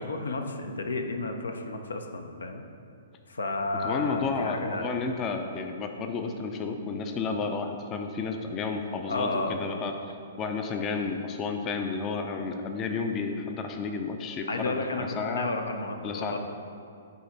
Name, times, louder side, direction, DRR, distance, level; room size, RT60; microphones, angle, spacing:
voice 1, 0.0-2.6 3.3-4.9 9.1-9.9 14.5-16.4, left 2 dB, 80° left, 6 dB, 0.5 m, -32 dB
voice 2, 3.8-9.9 10.4-15.5 16.0-16.4, left 4 dB, 25° left, 5 dB, 0.5 m, -31 dB
9.2 x 3.3 x 4.0 m, 2.5 s
figure-of-eight pair, 120°, 0 cm